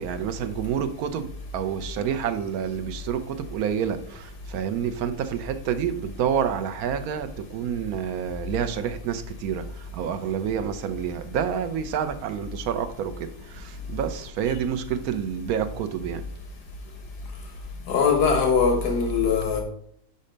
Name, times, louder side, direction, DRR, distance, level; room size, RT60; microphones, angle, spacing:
voice 1, 0.0-16.3, right 8 dB, 70° right, 1.1 m, -28 dB
voice 2, 17.9-19.6, left 5 dB, 80° left, 1.7 m, -21 dB
5.5 x 5.3 x 5.1 m
omnidirectional pair, 1.8 m